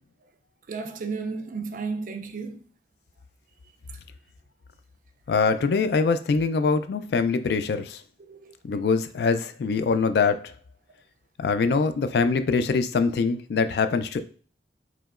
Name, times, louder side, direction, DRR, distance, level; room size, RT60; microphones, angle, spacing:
voice 1, 0.7-2.6 8.3-8.5, right 4 dB, 45° right, 0.4 m, -33 dB
voice 2, 5.3-8.0 8.6-10.4 11.4-14.2, left 4 dB, 60° left, 0.3 m, -23 dB
4.8 x 2.9 x 2.4 m
head